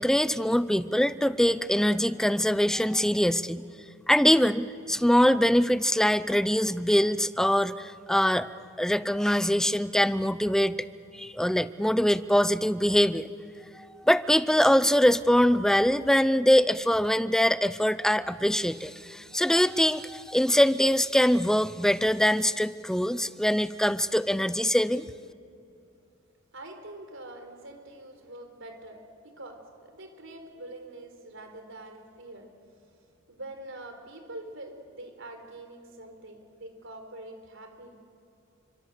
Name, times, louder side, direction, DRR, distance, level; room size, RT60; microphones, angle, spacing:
voice 1, 0.0-3.6 4.1-10.9 11.1-13.3 13.8-25.1, equal, 5° left, 15 dB, 0.6 m, -23 dB
voice 2, 26.5-32.5 33.3-38.0, right 1 dB, 65° right, 6 dB, 4.3 m, -44 dB
28.0 x 25.5 x 8.1 m, 2.7 s
head